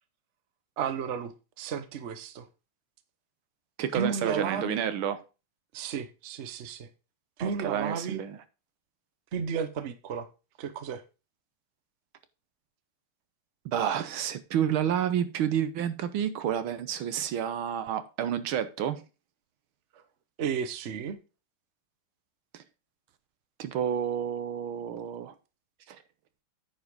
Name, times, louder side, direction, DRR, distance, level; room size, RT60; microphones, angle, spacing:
voice 1, 0.8-2.5 3.9-4.9 5.7-6.9 7.4-8.2 9.3-10.3 10.6-11.0 20.4-21.2, right 6 dB, 50° right, 0.8 m, -33 dB
voice 2, 3.8-5.2 7.4-8.4 13.6-19.0 22.5-22.6 23.6-25.3 25.9-26.0, right 9 dB, 75° right, 1.7 m, -30 dB
9.4 x 4.9 x 5.3 m
omnidirectional pair, 2.4 m